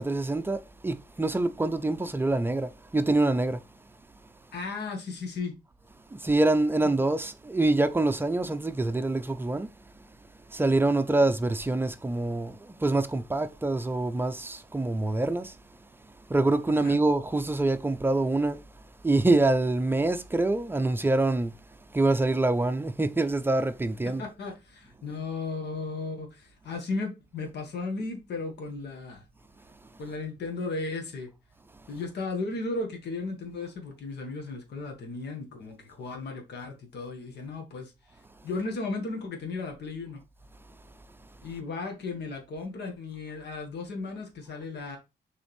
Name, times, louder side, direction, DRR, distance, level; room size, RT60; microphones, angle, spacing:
voice 1, 0.0-3.6 6.1-9.7 10.5-15.6 16.3-18.6 19.0-21.5 21.9-24.3, right 2 dB, 10° right, 0.5 m, -25 dB
voice 2, 4.5-5.5 6.8-6.9 16.8-17.0 24.2-29.2 30.0-31.3 31.9-37.9 38.4-40.2 41.4-45.0, left 3 dB, 70° left, 1.9 m, -35 dB
6.6 x 4.1 x 3.5 m
wide cardioid pair, 150°, 18 cm